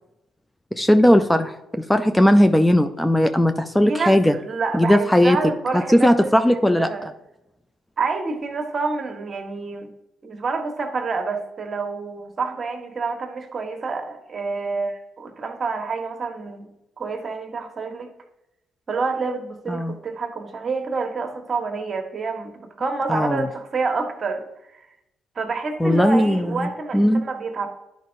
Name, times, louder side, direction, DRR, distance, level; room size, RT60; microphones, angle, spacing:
voice 1, 0.7-1.5 1.9-4.3 4.7-5.4 5.9-6.9 19.7-19.9 23.1-23.5 25.8-27.2, equal, 10° left, 8 dB, 0.5 m, -17 dB
voice 2, 3.8-7.1 8.0-9.9 10.2-16.7 17.0-18.1 18.9-24.5 24.7-24.9 25.3-27.7, right 4 dB, 45° right, 5 dB, 1.3 m, -28 dB
11.0 x 5.2 x 2.6 m, 0.86 s
hypercardioid pair, 50°, 0 cm